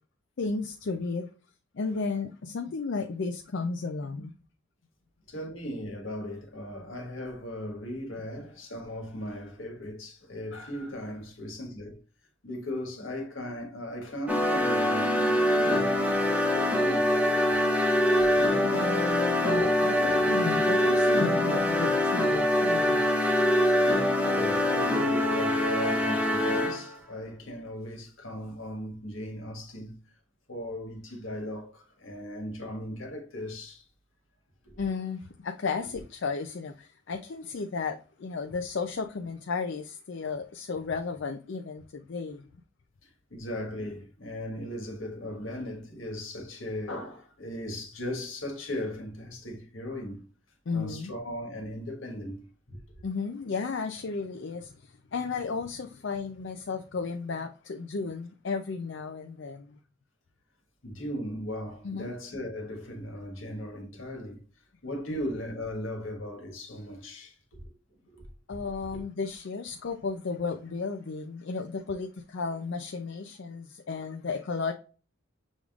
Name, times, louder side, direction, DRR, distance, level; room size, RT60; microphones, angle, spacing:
voice 1, 0.4-1.3 1.7-4.3 18.4-23.1 34.8-42.5 50.7-51.1 53.0-59.8 61.8-62.1 68.5-74.7, left 4 dB, 65° left, 0.4 m, -34 dB
voice 2, 5.3-12.0 12.4-17.1 18.7-18.9 23.9-30.2 30.5-33.9 34.6-34.8 43.0-50.2 50.7-53.0 60.8-64.4 64.8-67.7 68.1-68.3 68.9-69.0, left 1 dB, 80° left, 1.5 m, -38 dB
sound 1, 14.3-26.9, left 1 dB, 5° right, 0.9 m, -24 dB
6.3 x 3.6 x 2.4 m
head